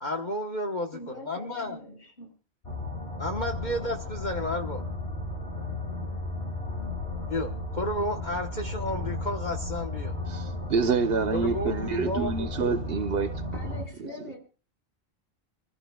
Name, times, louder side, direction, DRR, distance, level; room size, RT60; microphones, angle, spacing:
voice 1, 0.0-1.8 3.2-4.8 7.3-10.1 11.3-12.5, left 1 dB, 45° left, 1.2 m, -32 dB
voice 2, 0.9-2.3 13.5-14.4, equal, 65° left, 6.9 m, -43 dB
sound 1, 2.6-13.8, left 2 dB, 80° left, 4.8 m, -34 dB
voice 3, 10.3-13.3 13.6-13.7, right 5 dB, 65° right, 1.1 m, -27 dB
26.0 x 14.0 x 2.3 m
omnidirectional pair, 1.1 m